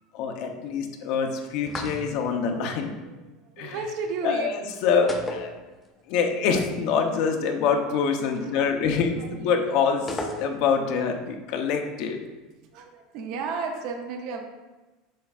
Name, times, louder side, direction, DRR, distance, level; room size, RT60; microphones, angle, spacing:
voice 1, 0.1-2.9 3.6-3.8 4.2-5.5 6.1-12.2, left 6 dB, 50° left, 4 dB, 0.7 m, -25 dB
sound 1, 1.7-2.4 5.1-6.1 6.4-6.5 10.1-10.9, left 2 dB, 15° left, 0.5 m, -34 dB
voice 2, 3.4-4.5 5.6-5.7 8.2-8.8 9.2-9.8 12.7-14.4, right 4 dB, 50° right, 3 dB, 0.7 m, -34 dB
7.6 x 5.5 x 2.4 m, 1.2 s
cardioid pair, 175°, 0 cm